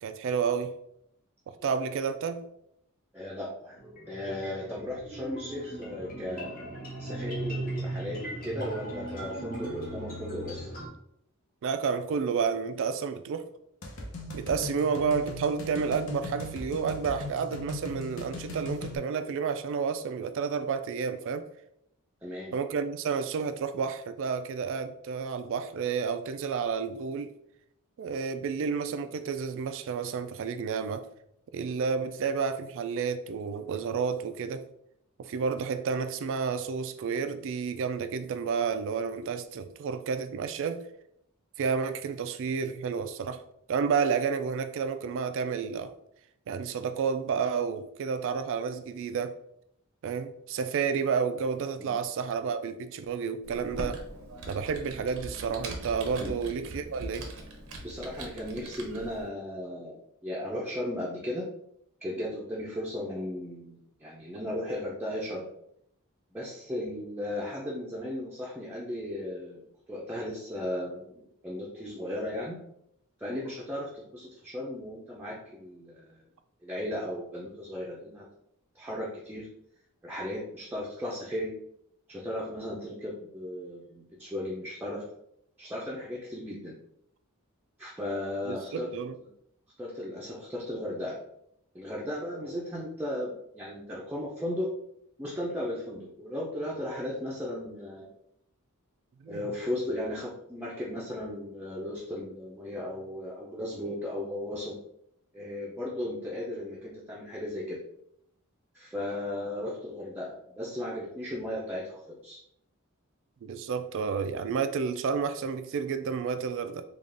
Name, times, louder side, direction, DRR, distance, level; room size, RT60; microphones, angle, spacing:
voice 1, 0.0-0.8 1.6-2.5 11.6-13.5 14.3-21.5 22.5-27.3 28.0-31.0 31.5-34.6 35.2-40.8 41.6-43.4 43.7-45.9 46.5-49.3 50.0-54.0 54.5-57.3 88.5-89.2 99.2-99.4 113.4-116.8, right 6 dB, 60° right, 0.3 m, -30 dB
voice 2, 3.1-3.8 4.1-6.6 7.0-10.7 22.2-22.6 51.8-51.9 56.1-56.3 57.8-61.5 62.0-65.5 66.3-72.6 73.2-76.2 76.6-78.2 78.7-79.5 80.0-81.5 82.1-85.0 85.6-86.7 87.8-88.9 89.8-91.2 91.7-94.7 95.2-98.1 99.3-104.7 105.3-107.8 108.7-112.4, left 1 dB, 10° right, 0.5 m, -36 dB
sound 1, 3.8-10.9, right 2 dB, 40° left, 1.1 m, -38 dB
sound 2, 13.8-19.0, left 1 dB, 65° left, 0.8 m, -38 dB
Computer keyboard, 53.4-59.2, right 1 dB, 80° right, 0.8 m, -41 dB
3.8 x 2.4 x 3.3 m
head